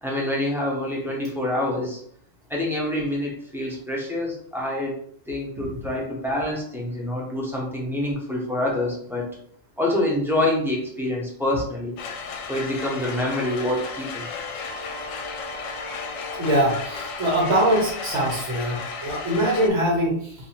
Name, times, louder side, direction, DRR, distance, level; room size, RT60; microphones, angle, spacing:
voice 1, 0.0-2.0 2.5-5.0 5.3-9.3 9.8-11.9 12.5-14.3, left 1 dB, ahead, -4 dB, 0.6 m, -26 dB
sound 1, 12.0-19.7, left 4 dB, 75° left, 0.9 m, -34 dB
voice 2, 16.4-20.3, right 1 dB, 70° right, -2 dB, 1.2 m, -23 dB
2.7 x 2.6 x 4.2 m, 0.64 s
omnidirectional pair, 1.4 m